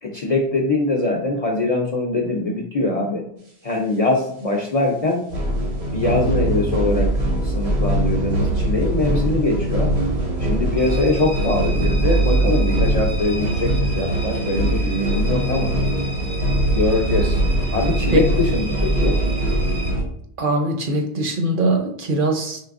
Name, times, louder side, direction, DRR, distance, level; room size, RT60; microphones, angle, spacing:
voice 1, 0.0-3.2 3.6-5.3 5.9-7.1 7.4-9.9 10.4-15.8 16.7-17.4 17.7-19.2, left 2 dB, 45° left, 0 dB, 0.5 m, -22 dB
sound 1, 5.3-20.0, right 1 dB, 80° right, 1.3 m, -21 dB
sound 2, 10.8-19.9, right 1 dB, 20° right, 0.5 m, -36 dB
voice 2, 20.4-22.6, right 2 dB, 60° right, 4 dB, 0.8 m, -21 dB
4.5 x 3.3 x 2.4 m, 0.69 s
omnidirectional pair, 1.1 m